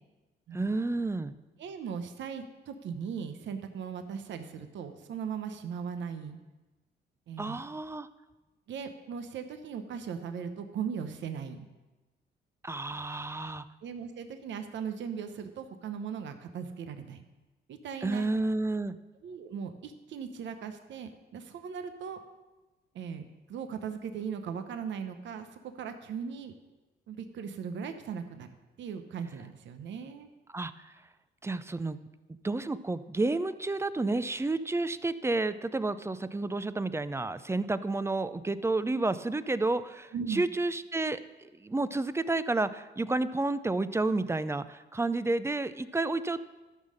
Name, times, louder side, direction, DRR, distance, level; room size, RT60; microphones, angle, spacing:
voice 1, 0.5-1.3 7.4-8.1 12.6-13.7 18.0-19.0 30.5-30.9 31.4-32.0 32.4-46.4, right 2 dB, 15° right, 13 dB, 0.5 m, -30 dB
voice 2, 1.6-6.4 7.3-7.6 8.7-11.7 13.3-13.4 13.8-17.2 17.7-18.3 19.2-22.2 22.9-26.5 27.1-28.5 28.8-30.3 40.1-40.4, right 7 dB, 70° right, 8 dB, 0.9 m, -38 dB
12.5 x 5.6 x 6.4 m, 1.1 s
cardioid pair, 90°, 20 cm